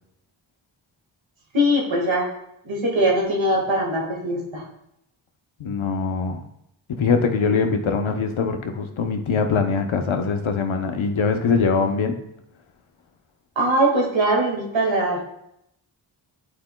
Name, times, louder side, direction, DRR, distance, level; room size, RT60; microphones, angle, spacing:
voice 1, 1.5-2.3 2.6-4.6 13.6-15.2, right 1 dB, 75° right, -1 dB, 1.9 m, -21 dB
voice 2, 5.6-6.4 6.9-12.2, left 5 dB, 85° left, 5 dB, 0.8 m, -22 dB
10.0 x 4.8 x 2.2 m, 0.80 s
cardioid pair, 50°, 47 cm